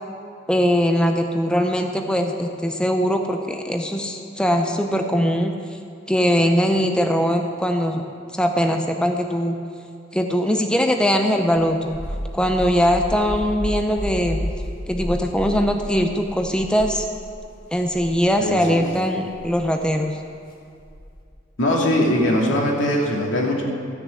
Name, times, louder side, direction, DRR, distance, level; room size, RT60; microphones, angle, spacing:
voice 1, 0.5-5.5 6.1-8.0 8.3-9.6 10.1-12.0 12.3-14.4 14.9-17.0 17.7-20.2, equal, 5° left, 4 dB, 0.6 m, -21 dB
sound 1, 11.5-17.4 17.8-18.2 19.3-19.6 20.8-21.2, equal, 50° left, 1.7 m, -31 dB
voice 2, 18.4-18.8 21.6-23.6, left 1 dB, 80° left, -2 dB, 2.5 m, -21 dB
14.0 x 6.7 x 8.3 m, 2.3 s
head